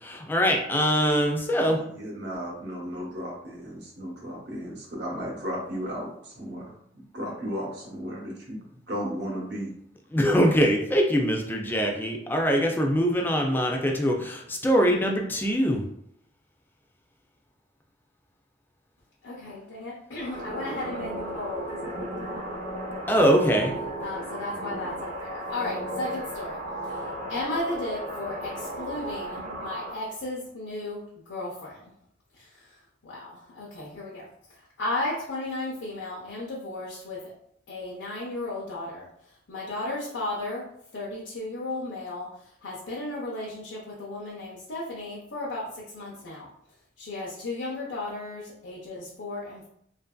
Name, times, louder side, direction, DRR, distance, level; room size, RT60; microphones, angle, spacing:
voice 1, 0.0-1.8 10.1-15.8 23.1-23.7, equal, 10° left, 1 dB, 0.3 m, -23 dB
voice 2, 1.6-9.8, equal, 65° right, -2 dB, 0.9 m, -35 dB
voice 3, 19.2-22.6 24.0-26.6 26.9-27.0 27.3-31.0 31.3-31.9 32.4-32.5 33.0-34.2 34.8-37.2 37.7-39.1 39.5-40.7 40.9-42.3 42.6-46.5 47.0-49.7, left 2 dB, 90° left, -5 dB, 0.6 m, -34 dB
sound 1, 20.2-30.0, right 1 dB, 40° right, 0.6 m, -35 dB
2.8 x 2.5 x 2.3 m, 0.70 s
head